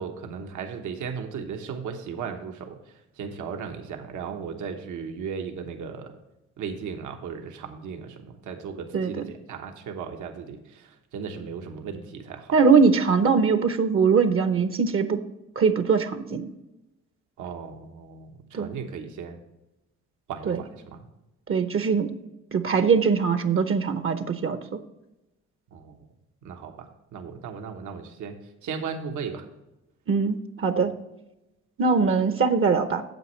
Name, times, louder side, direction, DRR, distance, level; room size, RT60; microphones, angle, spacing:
voice 1, 0.0-6.2 6.6-12.6 17.4-19.4 20.3-21.1 25.7-26.0 26.4-28.4 28.6-29.4, right 6 dB, 80° right, 5 dB, 1.1 m, -36 dB
voice 2, 8.9-9.3 12.5-15.2 15.6-16.5 18.5-18.7 20.5-20.6 21.5-22.1 22.5-24.6 30.1-30.9 31.8-33.0, right 5 dB, 45° right, 10 dB, 0.7 m, -21 dB
9.1 x 7.8 x 3.1 m, 0.96 s
cardioid pair, 90°, 30 cm